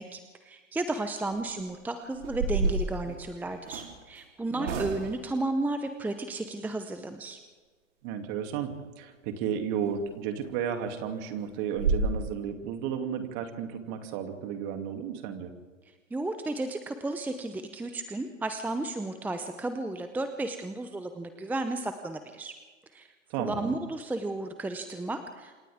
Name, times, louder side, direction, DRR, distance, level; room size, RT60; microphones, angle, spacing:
voice 1, 0.0-7.4 16.1-22.5 22.9-23.1 23.4-25.6, right 2 dB, 5° right, 8 dB, 0.8 m, -33 dB
sound 1, 1.3-1.6 2.1-3.9 4.6-5.3 9.8-9.9 10.4-10.5 10.9-11.0 11.4-11.5 11.7-12.1, right 3 dB, 65° right, 3.7 m, -30 dB
voice 2, 4.5-5.0 8.0-15.5 23.3-23.8, right 8 dB, 40° right, 5 dB, 2.8 m, -33 dB
28.0 x 26.0 x 3.7 m, 1.5 s
hypercardioid pair, 115°, 38 cm